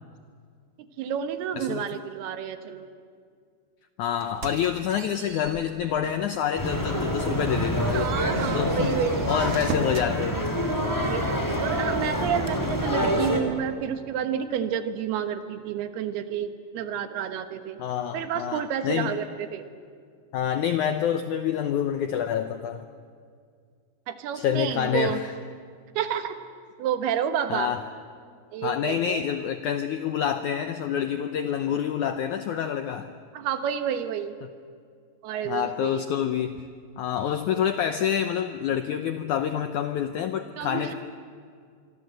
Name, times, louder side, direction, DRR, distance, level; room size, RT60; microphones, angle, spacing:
voice 1, 1.0-2.9 7.9-9.3 11.0-17.8 18.1-19.7 24.1-25.2 26.0-26.4 26.8-27.7 28.5-29.2 33.3-34.4 35.2-36.2 40.6-41.0, right 8 dB, 75° right, 9 dB, 3.2 m, -30 dB
voice 2, 4.0-8.2 8.5-8.9 9.3-10.4 12.4-12.5 17.8-19.1 20.3-22.9 24.3-25.3 27.5-27.8 28.6-33.1 35.5-36.6 37.0-40.9, left 9 dB, 85° left, 8 dB, 1.7 m, -27 dB
sound 1, 4.2-6.3 6.7-6.9 7.3-10.1, right 5 dB, 60° right, 1.7 m, -40 dB
sound 2, 6.6-13.4, equal, 5° left, 2.3 m, -27 dB
26.5 x 24.0 x 7.9 m, 2.2 s
omnidirectional pair, 4.6 m